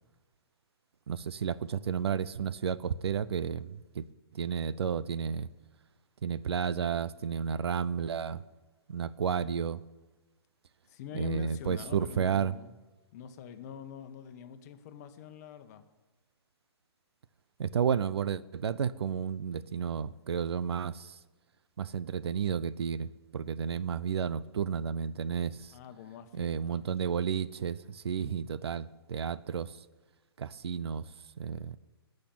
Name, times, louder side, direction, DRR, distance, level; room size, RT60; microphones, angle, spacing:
voice 1, 1.1-4.0 4.3-5.5 6.2-8.4 8.9-9.8 11.1-12.5 17.6-21.1 21.8-23.1 23.3-25.7 26.3-29.7 30.4-31.0 31.4-31.8, right 7 dB, 80° right, 17 dB, 0.7 m, -32 dB
voice 2, 10.9-12.8 13.1-15.8 25.7-26.9 28.2-28.5, left 8 dB, 40° left, 10 dB, 1.2 m, -45 dB
17.0 x 6.6 x 9.0 m, 1.1 s
hypercardioid pair, 145°, 13 cm